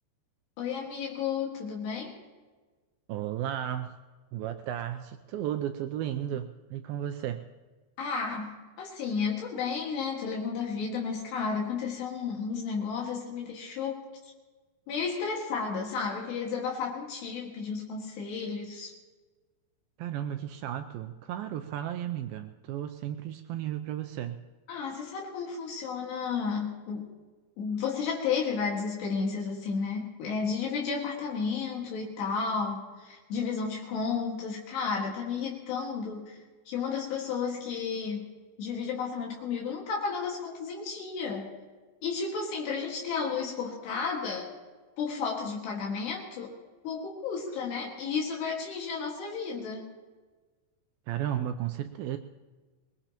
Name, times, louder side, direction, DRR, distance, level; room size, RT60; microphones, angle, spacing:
voice 1, 0.6-2.2 8.0-8.5 8.8-14.1 14.9-18.9 24.7-27.1 27.6-36.4 36.7-38.3 38.6-41.5 42.0-44.5 45.0-46.5 46.8-49.9, left 5 dB, 80° left, -2 dB, 4.0 m, -32 dB
voice 2, 3.1-3.9 4.3-7.4 20.0-24.4 51.1-52.2, right 11 dB, 85° right, 7 dB, 2.1 m, -34 dB
23.0 x 20.5 x 3.0 m, 1.3 s
omnidirectional pair, 4.8 m